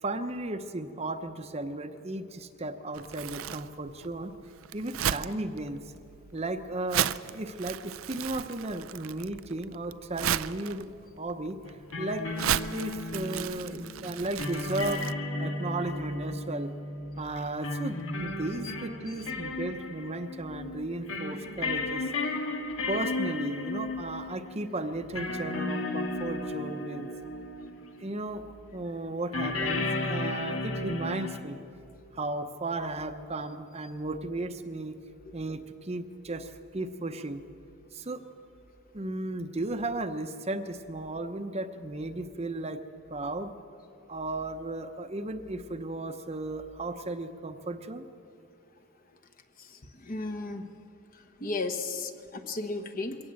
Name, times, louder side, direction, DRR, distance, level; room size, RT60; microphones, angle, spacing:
voice 1, 0.0-4.3 4.7-5.8 6.3-12.4 12.7-15.0 15.4-16.7 17.2-22.1 22.9-27.1 28.0-28.5 28.7-31.6 32.1-35.0 35.3-37.4 37.9-38.2 38.9-42.8 43.1-43.5 44.1-48.0, right 2 dB, 30° right, 8 dB, 0.8 m, -35 dB
Crumpling crinkling, 2.9-15.1, right 10 dB, 80° right, 0.5 m, -35 dB
sound 1, 11.6-28.0 29.3-31.4, left 2 dB, 75° left, 1.7 m, -34 dB
voice 2, 49.6-50.7 51.4-53.2, left 3 dB, 40° left, 7 dB, 1.2 m, -34 dB
22.5 x 17.5 x 7.7 m, 2.6 s
head